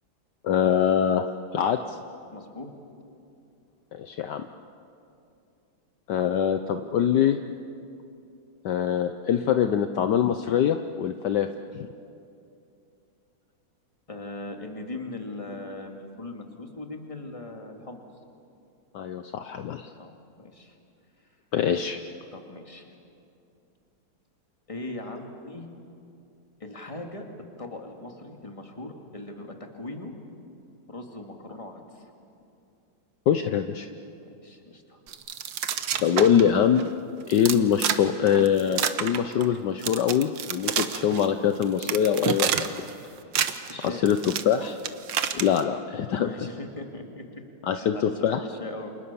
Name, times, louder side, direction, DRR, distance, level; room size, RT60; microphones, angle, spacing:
voice 1, 0.4-1.3 1.5-2.0 3.9-4.5 6.1-7.4 8.6-11.5 11.7-11.9 18.9-19.9 21.5-22.0 33.3-33.9 36.0-36.9 37.3-42.8 43.8-44.8 45.3-46.3 47.6-48.4, left 9 dB, 65° left, 8 dB, 1.3 m, -23 dB
voice 2, 2.3-2.7 14.1-18.0 20.0-20.8 22.3-22.9 24.7-25.7 26.6-27.3 27.6-30.1 30.9-32.1 34.2-35.0 43.7-44.0 46.1-47.4 47.7-48.9, left 2 dB, 15° left, 3 dB, 2.4 m, -39 dB
sound 1, 35.1-36.5 36.8-36.9 37.3-38.0 38.3-39.6 39.8-41.3 41.6-42.9 43.2-45.6, right 9 dB, 75° right, 1.7 m, -28 dB
29.0 x 27.0 x 7.0 m, 2.6 s
omnidirectional pair, 2.1 m